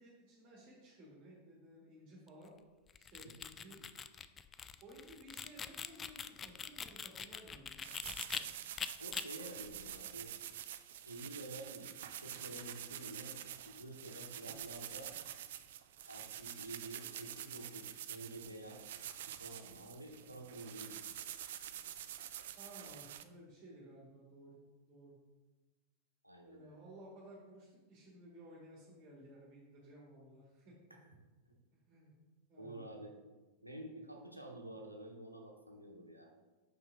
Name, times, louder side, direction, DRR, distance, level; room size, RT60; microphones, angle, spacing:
voice 1, 0.0-2.5 3.0-3.8 4.8-7.9 22.6-24.6 24.9-25.2 26.4-31.0 31.7-32.1 32.5-32.9, right 1 dB, 30° right, -5 dB, 1.8 m, -56 dB
sound 1, 2.9-8.4 8.8-9.2, left 7 dB, 20° left, 0.3 m, -43 dB
sound 2, 7.8-23.2, right 11 dB, 55° right, 0.3 m, -47 dB
voice 2, 9.0-10.3 11.0-11.9 12.2-13.4 13.7-15.1 16.1-18.8 19.4-21.3 26.2-26.8 30.9-31.0 31.5-31.6 32.6-33.1 33.6-36.3, right 1 dB, 90° right, 2 dB, 0.9 m, -49 dB
6.0 x 5.6 x 3.5 m, 1.2 s
figure-of-eight pair, 90°, 0 cm